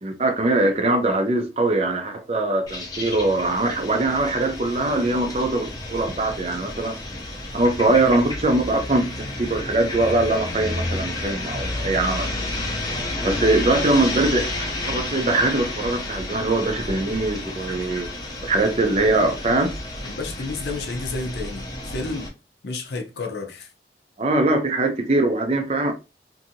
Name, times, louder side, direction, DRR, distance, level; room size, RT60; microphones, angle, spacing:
voice 1, 0.0-7.0 7.5-9.1 9.4-12.3 13.2-18.1 18.4-19.7 24.2-25.9, right 2 dB, 35° right, 0.5 m, -22 dB
sound 1, 2.7-22.3, left 2 dB, 20° left, 0.5 m, -31 dB
voice 2, 20.0-22.3 22.6-23.7, left 3 dB, 70° left, 0.6 m, -31 dB
2.6 x 2.6 x 2.6 m
head